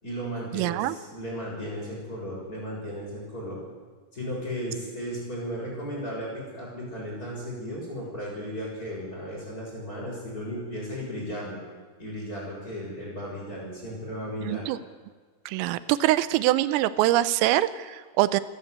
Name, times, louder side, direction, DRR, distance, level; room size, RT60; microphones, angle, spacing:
voice 1, 0.0-3.6 4.1-11.6 12.0-14.6, equal, 15° left, -3 dB, 6.9 m, -35 dB
voice 2, 0.5-1.0 14.4-14.8 15.5-18.4, right 15 dB, 90° right, 15 dB, 3.4 m, -24 dB
28.0 x 12.0 x 8.2 m, 1.5 s
omnidirectional pair, 5.8 m